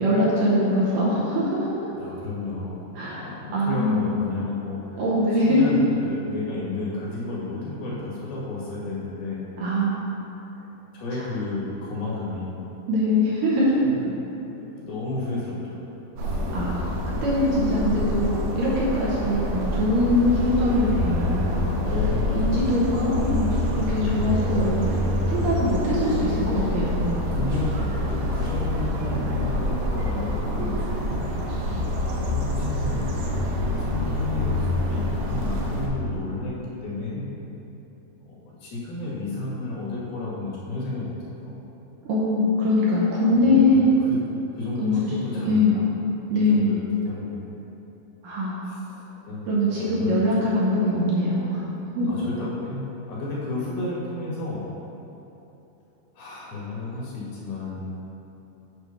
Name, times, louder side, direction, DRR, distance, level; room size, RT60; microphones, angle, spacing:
voice 1, 0.0-1.7 3.0-3.2 3.5-4.2 5.0-5.7 9.6-10.1 12.9-13.8 16.5-21.7 22.4-24.9 25.3-27.1 42.0-44.0 44.8-45.8 46.3-46.9 48.2-48.6 49.5-51.6 52.0-52.1, left 1 dB, 70° right, -7 dB, 2.3 m, -22 dB
voice 2, 2.0-5.0 5.4-9.4 10.6-12.6 13.8-14.1 14.5-15.8 16.2-16.5 21.8-22.9 27.3-31.2 31.9-33.0 33.8-36.6 36.8-37.2 38.3-41.1 41.4-41.6 43.3-44.2 44.6-45.9 46.3-47.4 48.6-48.8 49.3-50.5 50.8-51.0 52.1-52.8 53.1-54.6 56.2-57.9, left 2 dB, 70° left, -6 dB, 3.4 m, -32 dB
sound 1, 16.2-35.9, left 1 dB, 85° right, 2.9 m, -26 dB
9.0 x 3.4 x 5.8 m, 3.0 s
omnidirectional pair, 4.6 m